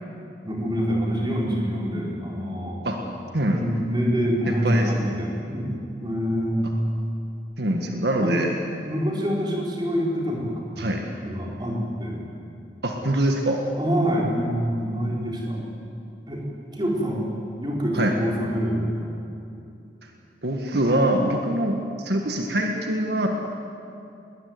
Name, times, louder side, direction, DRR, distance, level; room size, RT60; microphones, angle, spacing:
voice 1, 0.4-2.8 3.5-5.7 6.0-6.7 8.2-8.4 8.8-10.9 11.2-12.2 13.7-15.6 16.3-16.4 16.7-17.2 17.6-19.1, equal, 25° right, -3 dB, 4.7 m, -26 dB
voice 2, 4.5-4.9 7.6-8.5 10.8-11.0 12.8-13.6 17.9-18.2 20.4-23.3, right 1 dB, 70° right, 2 dB, 1.8 m, -24 dB
21.5 x 19.5 x 9.6 m, 2.7 s
head